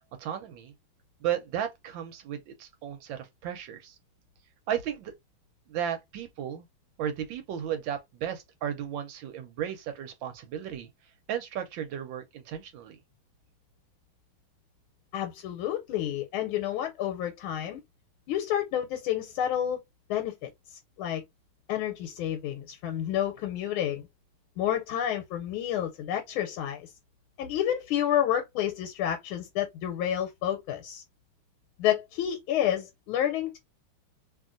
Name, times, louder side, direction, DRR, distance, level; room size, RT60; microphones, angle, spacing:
voice 1, 0.2-0.7 1.2-4.0 4.7-5.1 5.7-6.7 7.0-10.9 11.3-13.0, right 9 dB, 75° right, 1.3 m, -34 dB
voice 2, 15.1-17.8 18.3-19.8 20.1-21.2 21.7-24.1 24.6-26.9 27.4-31.0 31.8-33.6, left 11 dB, 85° left, 1.5 m, -30 dB
2.9 x 2.7 x 2.5 m
omnidirectional pair, 2.2 m